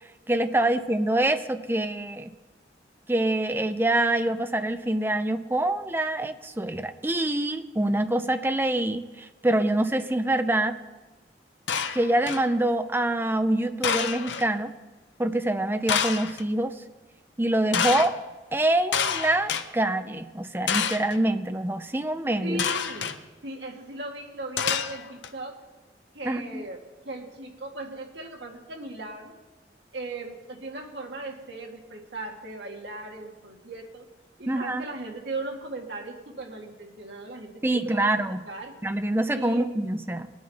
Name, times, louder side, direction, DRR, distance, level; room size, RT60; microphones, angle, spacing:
voice 1, 0.3-2.3 3.1-10.8 11.9-14.7 15.2-16.7 17.4-18.2 18.5-22.6 26.2-26.6 34.5-34.8 37.6-38.4 38.8-40.3, right 1 dB, 10° right, 9 dB, 0.5 m, -25 dB
sound 1, 11.7-12.5 13.8-14.5 15.9-16.4 17.7-18.1 18.9-19.6 20.7-21.2 22.6-23.2 24.6-25.3, left 7 dB, 85° left, 0.8 m, -27 dB
voice 2, 22.4-23.2 23.4-25.6 26.1-29.4 29.9-34.1 34.4-38.8 39.3-39.7, right 2 dB, 75° right, 1 dB, 1.9 m, -38 dB
20.5 x 9.4 x 4.1 m, 1.2 s
head